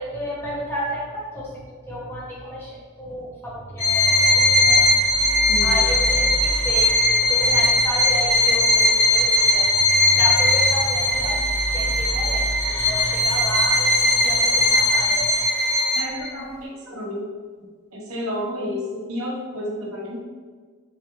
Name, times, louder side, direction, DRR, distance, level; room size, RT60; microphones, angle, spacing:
voice 1, 0.0-1.5 1.9-4.8 5.6-6.9 7.3-9.7 10.1-11.5 11.7-12.5 12.9-15.4, equal, 10° left, -6 dB, 0.7 m, -32 dB
sound 1, 3.5-15.5, equal, 10° right, 0.3 m, -33 dB
Bowed string instrument, 3.8-16.3, left 1 dB, 60° left, 1.2 m, -19 dB
voice 2, 16.0-17.3 17.9-20.2, left 1 dB, 70° right, -3 dB, 0.8 m, -31 dB
3.9 x 2.1 x 3.0 m, 1.5 s
head